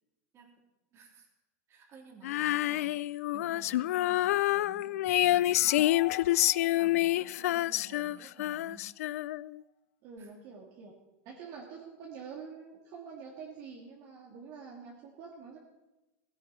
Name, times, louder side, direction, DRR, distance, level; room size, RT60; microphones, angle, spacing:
voice 1, 0.9-1.3 1.7-5.5 6.6-8.9 10.2-10.3, right 5 dB, 35° right, 1 dB, 3.6 m, -53 dB
Female singing, 2.2-9.6, left 15 dB, 75° left, 0.4 m, -28 dB
sound 1, 5.0-8.5, left 16 dB, 60° left, 0.8 m, -46 dB
voice 2, 10.0-10.9 11.2-15.6, right 5 dB, 50° right, -2 dB, 2.8 m, -46 dB
16.0 x 16.0 x 4.5 m, 1.0 s
supercardioid pair, 130°, 8 cm